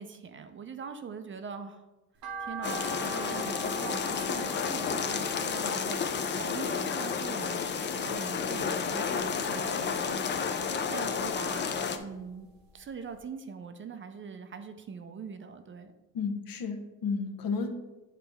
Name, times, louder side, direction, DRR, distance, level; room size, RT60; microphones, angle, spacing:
voice 1, 0.0-1.8 2.4-12.5 12.7-15.9, right 5 dB, 35° right, 8 dB, 0.5 m, -42 dB
sound 1, 2.2-8.5 8.9-10.0 10.4-11.8 12.2-12.3 12.8-12.9 13.1-13.2, right 3 dB, 70° right, 0.9 m, -44 dB
sound 2, 2.6-12.0, left 6 dB, 30° left, 0.4 m, -31 dB
voice 2, 16.1-17.7, left 5 dB, 70° left, 6 dB, 0.9 m, -32 dB
8.8 x 4.1 x 3.4 m, 1.1 s
cardioid pair, 160°, 36 cm